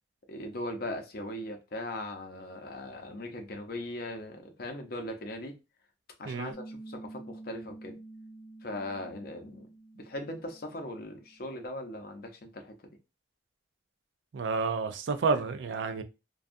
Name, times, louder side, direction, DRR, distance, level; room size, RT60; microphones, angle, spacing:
voice 1, 0.3-5.5 6.2-7.9 8.6-9.7 10.0-12.8, left 1 dB, 55° left, 0.6 m, -39 dB
Piano, 6.5-11.6, right 2 dB, 15° right, 0.8 m, -49 dB
voice 2, 14.3-16.0, right 4 dB, 85° right, 0.4 m, -30 dB
2.6 x 2.3 x 2.5 m
head